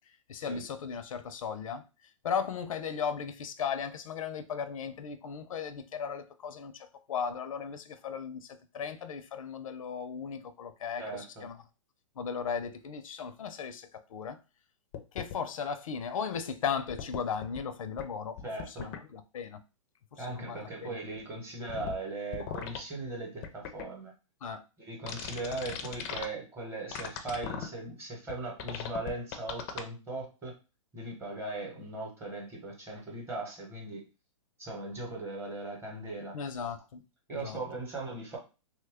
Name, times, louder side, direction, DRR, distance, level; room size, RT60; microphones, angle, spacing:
voice 1, 0.3-1.8 2.2-11.6 12.2-14.4 15.1-18.4 18.7-19.6 20.1-20.9 24.4-24.6 36.3-37.0 37.3-37.6, left 6 dB, 80° left, 0.5 m, -36 dB
voice 2, 11.0-11.5 18.4-18.9 20.2-24.1 24.8-30.5 30.9-34.0 34.6-36.4 37.3-38.4, right 2 dB, 15° right, 0.8 m, -39 dB
sound 1, 14.9-15.3 16.9-17.6 18.0-18.1 18.4-19.0 21.7-21.9 22.3-22.8 23.4-23.8 25.1-26.3 26.9-27.7 28.3-28.4 28.6-29.8, left 8 dB, 30° left, 0.4 m, -37 dB
3.0 x 2.2 x 3.4 m
hypercardioid pair, 145°, 17 cm